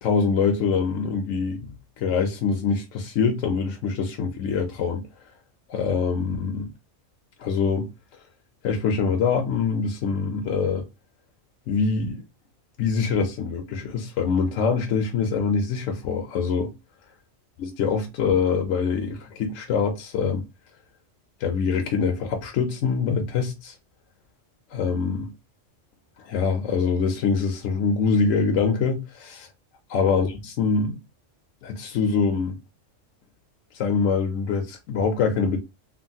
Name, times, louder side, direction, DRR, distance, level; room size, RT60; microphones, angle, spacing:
voice 1, 0.0-5.1 5.7-6.7 7.4-7.9 8.6-10.9 11.7-12.2 12.8-16.7 17.6-20.4 21.4-23.7 24.7-25.3 26.2-29.5 29.9-31.0 31.6-32.6 33.7-35.6, left 5 dB, 75° left, 0.9 m, -24 dB
3.0 x 2.4 x 2.6 m
omnidirectional pair, 1.3 m